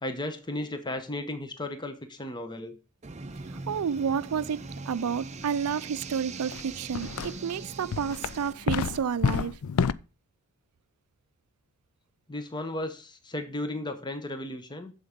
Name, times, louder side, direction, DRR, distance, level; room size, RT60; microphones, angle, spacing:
voice 1, 0.0-2.8 8.4-8.7 12.3-14.9, left 1 dB, 20° left, 0.9 m, -35 dB
sound 1, 3.0-8.5, right 3 dB, 30° right, 0.6 m, -41 dB
voice 2, 3.7-9.6, right 7 dB, 75° right, 0.4 m, -30 dB
sound 2, 6.5-6.6 6.9-7.5 7.9-9.9, left 6 dB, 75° left, 0.4 m, -28 dB
7.8 x 7.1 x 5.1 m
head